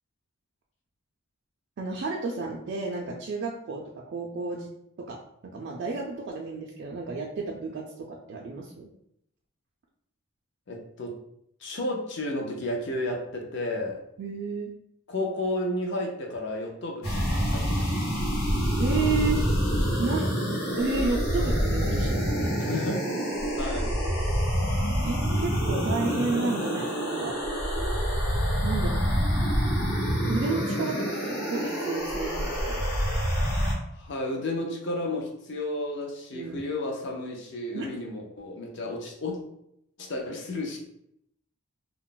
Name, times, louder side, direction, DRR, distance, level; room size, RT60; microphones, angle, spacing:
voice 1, 1.8-4.7 5.1-5.2 5.4-8.9 14.2-14.7 18.8-19.4 20.0-20.3 20.8-22.6 25.0-27.4 28.6-29.0 30.3-32.8 36.3-36.6 37.7-37.9, right 3 dB, 50° right, -2 dB, 0.3 m, -31 dB
voice 2, 10.7-11.2 11.6-14.0 15.1-18.2 22.6-23.1 23.6-23.9 33.9-39.4 40.0-40.8, left 1 dB, 55° left, 1 dB, 0.5 m, -32 dB
sound 1, 17.0-33.7, equal, 75° left, 1.0 m, -27 dB
2.3 x 2.0 x 3.7 m, 0.76 s
head